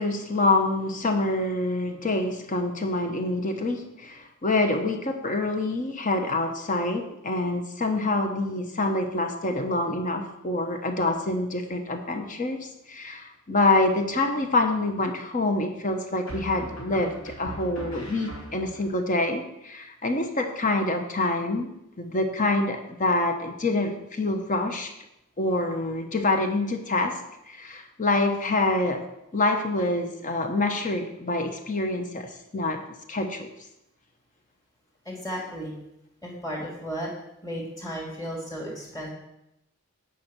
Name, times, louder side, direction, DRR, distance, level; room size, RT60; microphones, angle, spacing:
voice 1, 0.0-21.7 22.0-24.9 25.4-27.2 27.5-29.1 29.3-32.8 33.1-33.5, left 2 dB, 35° left, 5 dB, 1.0 m, -26 dB
sound 1, 13.7-14.2 16.3-18.9, right 1 dB, 60° left, 3.1 m, -40 dB
voice 2, 35.1-35.7 36.2-37.1 37.4-39.1, equal, 15° left, -2 dB, 2.5 m, -34 dB
9.4 x 5.5 x 6.2 m, 0.85 s
head